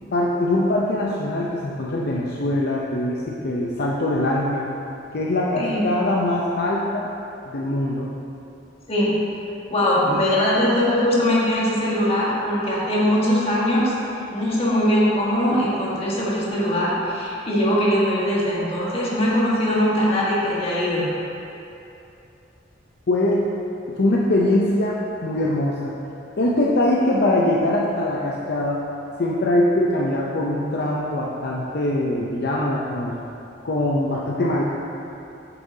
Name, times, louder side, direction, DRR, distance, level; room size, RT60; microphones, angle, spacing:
voice 1, 0.1-4.7 5.1-7.1 7.5-8.1 23.1-23.5 24.0-25.9 26.4-28.8 29.2-33.2 33.6-34.6, left 1 dB, 60° left, -4 dB, 0.6 m, -22 dB
voice 2, 9.7-13.9 14.3-21.1, equal, 35° left, -6 dB, 1.5 m, -21 dB
8.5 x 7.0 x 2.8 m, 2.8 s
head